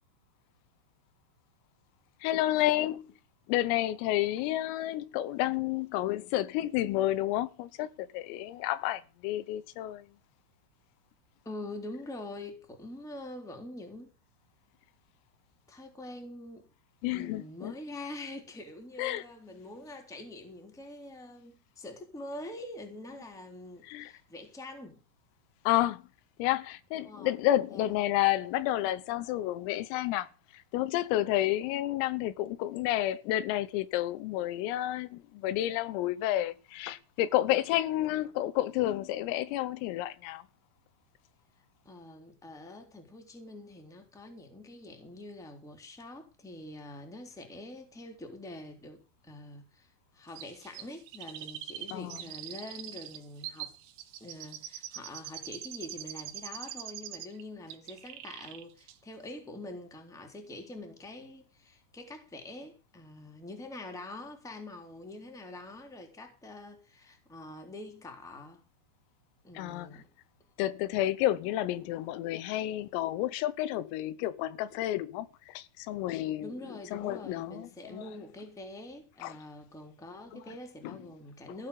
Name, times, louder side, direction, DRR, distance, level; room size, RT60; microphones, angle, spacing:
voice 1, 2.2-3.2 3.5-10.1 17.0-17.7 19.0-19.2 23.8-24.1 25.7-26.0 26.4-40.4 51.9-52.2 69.6-69.9 70.6-76.5 76.9-78.1 79.2-79.3 80.3-80.4 80.8-81.0, left 14 dB, 90° left, 3.7 m, -30 dB
voice 2, 11.4-14.1 15.7-16.7 17.1-25.0 27.0-27.4 27.7-27.9 41.6-53.7 54.2-68.6 69.4-70.1 76.4-81.7, left 1 dB, ahead, 2.3 m, -45 dB
Chirp tweet, 50.4-57.4 57.7-58.6 58.9-59.0, right 12 dB, 75° right, 3.4 m, -43 dB
15.5 x 7.0 x 8.5 m
omnidirectional pair, 5.9 m